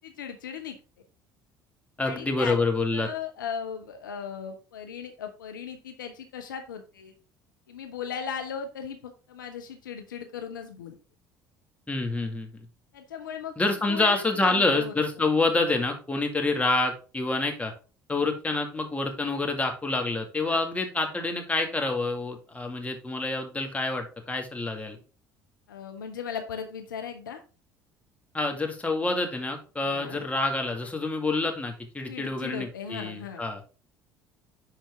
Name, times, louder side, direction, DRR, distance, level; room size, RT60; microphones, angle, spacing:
voice 1, 0.0-0.8 2.0-2.6 2.9-7.1 7.7-11.0 12.9-13.5 13.9-14.9 20.5-20.6 25.7-27.4 29.8-30.3 32.1-33.6, left 7 dB, 75° left, 5 dB, 0.8 m, -37 dB
voice 2, 2.0-3.1 11.9-12.7 13.6-17.7 18.1-25.0 28.3-33.6, left 3 dB, 15° left, 3 dB, 2.1 m, -27 dB
10.5 x 4.3 x 3.5 m, 0.35 s
figure-of-eight pair, 60°, 11 cm